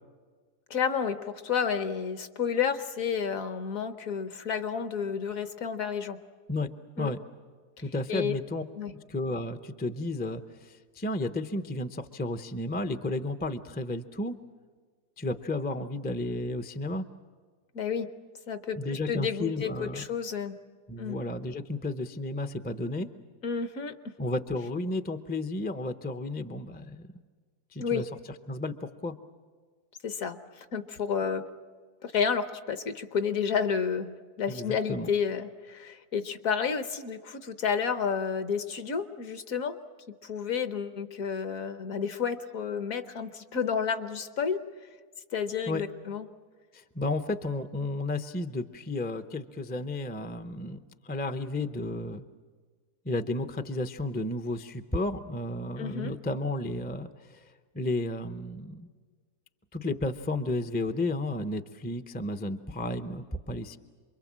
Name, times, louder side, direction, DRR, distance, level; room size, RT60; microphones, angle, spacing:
voice 1, 0.7-6.2 7.0-7.1 8.1-8.3 8.8-8.9 17.7-18.1 18.5-20.6 21.0-21.2 23.4-23.9 27.8-28.0 30.0-30.4 30.7-31.4 32.0-39.8 40.2-44.6 45.3-46.3 55.8-56.1, left 6 dB, 65° left, 10 dB, 1.4 m, -31 dB
voice 2, 7.8-8.6 9.1-14.4 15.2-17.0 18.7-20.0 20.9-23.1 24.2-27.1 27.7-28.1 28.5-29.1 34.5-35.1 45.7-45.8 46.7-50.8 51.0-52.2 53.0-58.9 59.7-63.8, left 2 dB, 15° left, 9 dB, 0.3 m, -32 dB
27.5 x 22.5 x 7.4 m, 1.5 s
omnidirectional pair, 1.6 m